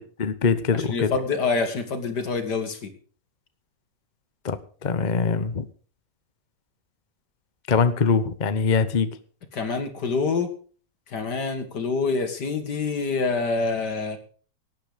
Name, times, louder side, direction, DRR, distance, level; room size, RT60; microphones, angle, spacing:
voice 1, 0.2-1.1 4.4-4.6 4.8-5.6 7.7-9.2, left 5 dB, 35° left, 11 dB, 0.7 m, -22 dB
voice 2, 0.7-2.9 9.5-10.5 11.1-14.2, left 4 dB, 65° left, 7 dB, 2.5 m, -26 dB
18.0 x 9.1 x 5.2 m, 0.42 s
omnidirectional pair, 2.0 m